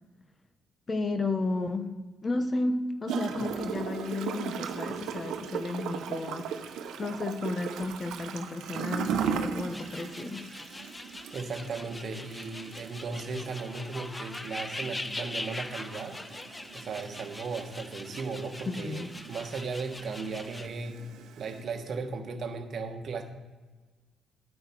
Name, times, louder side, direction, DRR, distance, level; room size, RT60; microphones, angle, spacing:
voice 1, 0.9-1.9 2.2-10.4 18.7-19.1, left 2 dB, 35° left, 8 dB, 0.9 m, -33 dB
Gurgling / Toilet flush, 3.1-21.6, right 7 dB, 80° right, 0.8 m, -38 dB
sound 1, 9.7-20.7, left 2 dB, 15° left, 0.5 m, -42 dB
voice 2, 11.3-16.2 16.7-21.0 21.4-23.2, right 4 dB, 55° right, 5 dB, 1.3 m, -36 dB
9.4 x 6.5 x 4.5 m, 1.3 s
cardioid pair, 90°, 0 cm